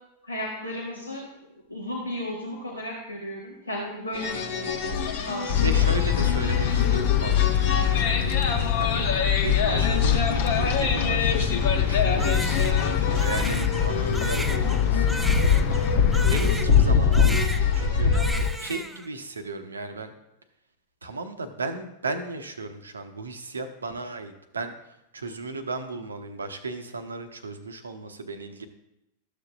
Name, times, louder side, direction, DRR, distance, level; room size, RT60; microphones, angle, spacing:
voice 1, 0.2-1.3 1.7-5.9 8.4-8.8, left 1 dB, 85° left, -4 dB, 1.2 m, -35 dB
sound 1, 4.1-18.5, left 5 dB, 55° left, 1.0 m, -25 dB
sound 2, 5.5-16.6, left 9 dB, 40° left, 0.6 m, -24 dB
voice 2, 5.6-8.2 8.8-15.8 16.3-18.1 18.6-20.1 21.0-24.7 25.1-28.7, right 3 dB, 75° right, 8 dB, 0.8 m, -35 dB
Crying sobbing, 12.2-16.9 17.1-17.9 18.1-19.1, right 1 dB, 5° right, 0.6 m, -35 dB
13.0 x 6.9 x 2.4 m, 0.88 s
figure-of-eight pair, 90°, 0 cm